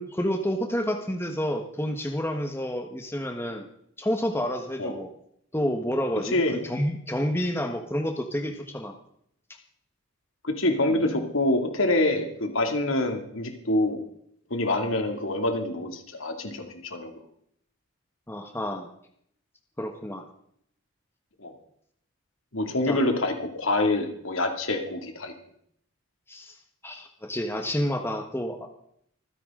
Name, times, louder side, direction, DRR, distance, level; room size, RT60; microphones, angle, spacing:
voice 1, 0.0-3.6 4.0-5.1 5.5-8.9 11.0-11.1 18.3-18.9 19.8-20.2 22.8-23.0 26.3-26.5 26.8-28.7, equal, 10° left, 4 dB, 1.2 m, -29 dB
voice 2, 6.3-6.6 10.4-14.0 14.5-17.1 21.4-21.5 22.5-25.3, left 1 dB, 70° left, 4 dB, 2.5 m, -26 dB
25.5 x 10.0 x 3.8 m, 0.68 s
head